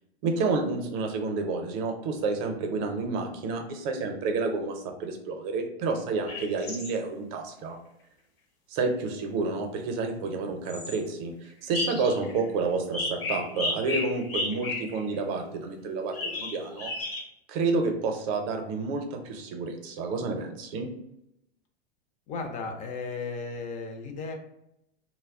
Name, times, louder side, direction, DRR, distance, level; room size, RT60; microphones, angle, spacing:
voice 1, 0.2-7.8 8.7-16.9 17.5-20.9, right 3 dB, 45° right, 4 dB, 0.6 m, -30 dB
sound 1, 6.3-6.9 10.7-11.0 11.7-12.5 12.9-15.1 16.1-17.2, left 2 dB, 65° left, 0.9 m, -33 dB
voice 2, 22.3-24.3, left 4 dB, 25° left, 4 dB, 0.4 m, -35 dB
2.2 x 2.1 x 3.5 m, 0.81 s
hypercardioid pair, 100°, 31 cm